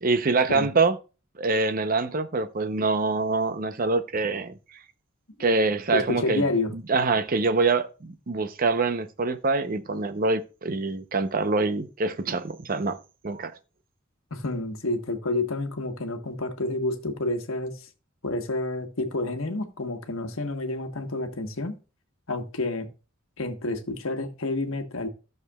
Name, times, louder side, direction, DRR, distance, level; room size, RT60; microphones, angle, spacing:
voice 1, 0.0-1.0 1.4-4.5 5.4-6.5 6.7-13.0 13.2-13.5, right 3 dB, 45° right, 0.7 m, -25 dB
voice 2, 5.7-6.7 14.3-17.8 18.2-21.8 22.3-22.9 23.4-25.1, left 2 dB, 90° left, 1.2 m, -29 dB
14.0 x 6.6 x 2.3 m
head